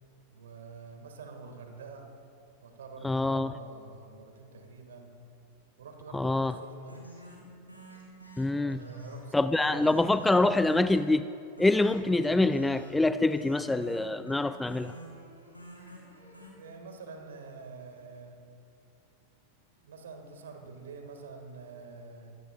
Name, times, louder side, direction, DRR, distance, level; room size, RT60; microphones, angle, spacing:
voice 1, 0.3-2.1 2.6-5.2 5.8-7.0 8.6-9.9 16.6-18.4 19.8-22.3, right 4 dB, 65° right, 5 dB, 1.9 m, -47 dB
voice 2, 3.0-3.6 6.1-6.6 8.4-8.8 9.3-11.3 11.6-14.9, left 2 dB, 5° left, 13 dB, 0.3 m, -25 dB
sound 1, 6.5-16.5, right 1 dB, 90° left, 4.2 m, -48 dB
24.5 x 16.5 x 2.4 m, 2.5 s
figure-of-eight pair, 90°, 0 cm